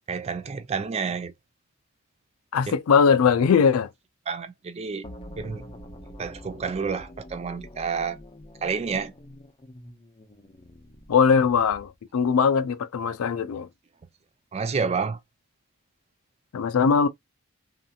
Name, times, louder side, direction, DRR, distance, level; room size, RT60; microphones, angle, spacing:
voice 1, 0.1-1.3 2.7-2.8 4.3-5.1 5.4-5.7 6.2-8.2 8.6-9.1 14.5-15.2, right 5 dB, 30° right, 0.3 m, -29 dB
voice 2, 2.5-3.9 11.1-13.7 16.5-17.1, left 6 dB, 85° left, 0.4 m, -20 dB
sound 1, 5.0-11.9, left 1 dB, 25° left, 0.5 m, -45 dB
2.7 x 2.5 x 2.3 m
head